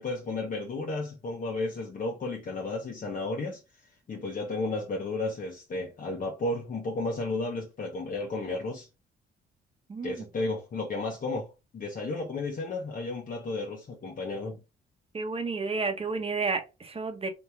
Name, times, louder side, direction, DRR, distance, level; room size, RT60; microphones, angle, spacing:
voice 1, 0.0-3.6 4.1-8.9 10.0-14.6, left 2 dB, 45° left, 1.0 m, -33 dB
voice 2, 9.9-10.2 15.1-17.3, right 4 dB, 30° right, 1.2 m, -31 dB
4.1 x 2.9 x 3.5 m
cardioid pair, 90°, 20 cm